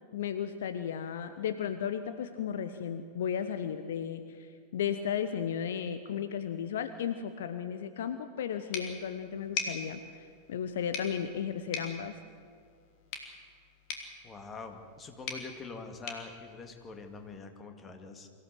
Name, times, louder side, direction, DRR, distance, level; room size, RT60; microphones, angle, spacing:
voice 1, 0.1-12.2, left 8 dB, 60° left, 10 dB, 0.9 m, -35 dB
sound 1, 8.7-17.4, left 5 dB, 45° left, 3.0 m, -43 dB
voice 2, 14.2-18.3, left 4 dB, 20° left, 5 dB, 2.2 m, -45 dB
24.0 x 15.5 x 7.8 m, 2.2 s
figure-of-eight pair, 90°, 0 cm